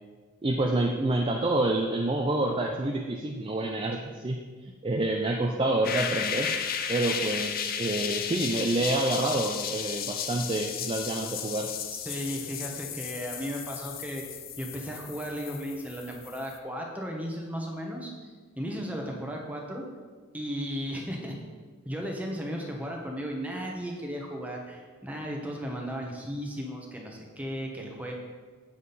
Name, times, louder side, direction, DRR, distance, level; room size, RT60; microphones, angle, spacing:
voice 1, 0.4-4.4 4.6-6.5 6.9-11.7, right 2 dB, 25° right, 1 dB, 0.5 m, -28 dB
sound 1, 5.8-16.6, left 7 dB, 45° left, 0.5 m, -34 dB
voice 2, 12.0-14.2 14.6-18.1 18.6-19.8 20.3-21.4 21.8-28.1, equal, 5° right, 0 dB, 1.2 m, -35 dB
8.5 x 7.3 x 4.1 m, 1.4 s
head